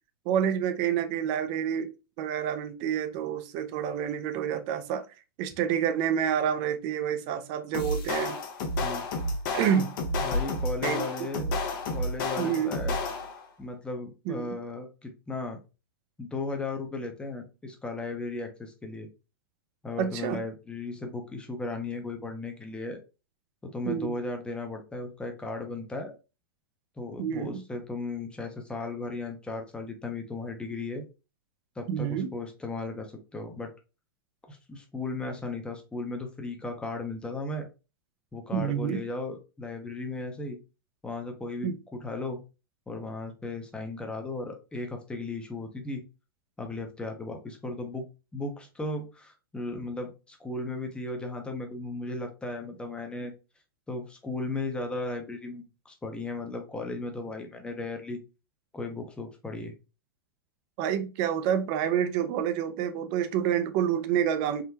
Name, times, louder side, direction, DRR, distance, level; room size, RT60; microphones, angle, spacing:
voice 1, 0.3-1.9 2.2-5.0 5.4-8.4 9.5-9.9 10.8-11.3 12.4-12.7 14.3-14.6 20.0-20.4 23.9-24.1 27.2-27.6 31.9-32.3 38.5-39.0 41.6-41.8 60.8-64.6, right 9 dB, 40° right, 0.5 m, -28 dB
sound 1, 7.7-13.4, left 2 dB, 55° left, 0.8 m, -31 dB
voice 2, 8.8-9.4 10.2-11.5 11.9-12.9 13.6-15.6 16.2-19.1 19.8-23.0 23.6-26.2 27.0-31.0 31.8-33.7 34.4-37.7 38.3-40.6 41.0-42.4 42.9-46.0 46.6-48.0 48.3-53.3 53.9-58.2 58.7-59.7, left 2 dB, 10° left, 0.7 m, -36 dB
3.7 x 2.1 x 2.7 m
hypercardioid pair, 130°, 13 cm